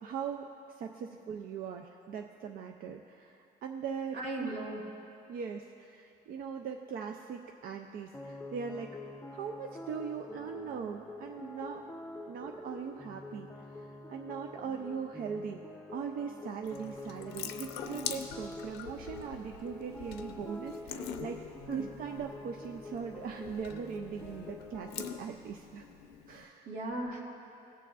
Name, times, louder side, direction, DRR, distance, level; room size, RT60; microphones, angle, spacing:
voice 1, 0.0-4.5 5.3-9.0 9.3-11.8 12.3-15.6 15.9-21.4 21.7-25.9 26.3-26.7, right 7 dB, 60° right, 3 dB, 0.5 m, -40 dB
voice 2, 4.1-4.8 21.7-21.9 26.6-27.2, right 2 dB, 85° right, -1 dB, 1.6 m, -37 dB
sound 1, 8.1-25.3, left 2 dB, 10° left, 0.5 m, -46 dB
Water tap faucet / Sink (filling or washing) / Drip, 16.6-26.4, left 8 dB, 85° left, 0.6 m, -45 dB
18.0 x 6.9 x 2.4 m, 2.7 s
cardioid pair, 110°, 17 cm